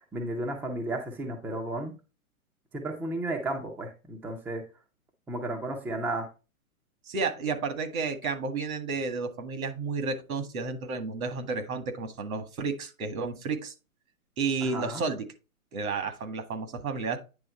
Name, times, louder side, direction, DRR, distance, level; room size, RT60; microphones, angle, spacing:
voice 1, 0.0-1.9 2.7-4.6 5.3-6.3 14.6-15.0, right 1 dB, 5° right, 2 dB, 0.5 m, -33 dB
voice 2, 7.1-13.7 14.4-15.3 15.7-17.2, right 4 dB, 75° right, 8 dB, 1.9 m, -31 dB
9.3 x 3.5 x 4.3 m, 0.30 s
hypercardioid pair, 140°, 43 cm